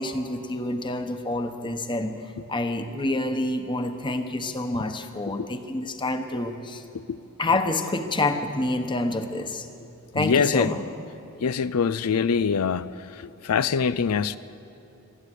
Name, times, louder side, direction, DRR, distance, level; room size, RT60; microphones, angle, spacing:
voice 1, 0.0-6.8 7.4-9.7 10.1-10.8, left 2 dB, 20° left, 1.1 m, -28 dB
voice 2, 10.1-10.7 11.4-12.9 13.1-14.4, left 6 dB, 90° left, 0.5 m, -24 dB
24.0 x 13.5 x 9.9 m
head